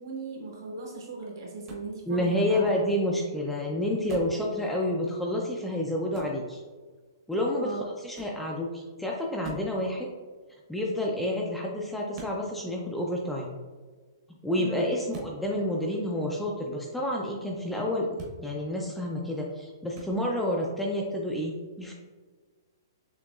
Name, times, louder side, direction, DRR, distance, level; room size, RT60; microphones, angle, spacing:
voice 1, 0.0-2.6 7.6-7.8 14.5-14.9, right 3 dB, 70° right, -1 dB, 1.4 m, -38 dB
sound 1, 1.6-1.9 4.1-4.4 6.1-6.4 8.1-8.4 9.4-9.7 12.1-12.4 15.1-15.4 18.1-18.4 19.9-20.1, right 2 dB, 30° right, 0.8 m, -41 dB
voice 2, 2.1-6.6 7.3-10.1 10.7-13.6 14.4-18.1 18.4-21.9, left 1 dB, 5° left, -3 dB, 0.3 m, -29 dB
6.3 x 2.9 x 2.3 m, 1.4 s
hypercardioid pair, 165°, 2 cm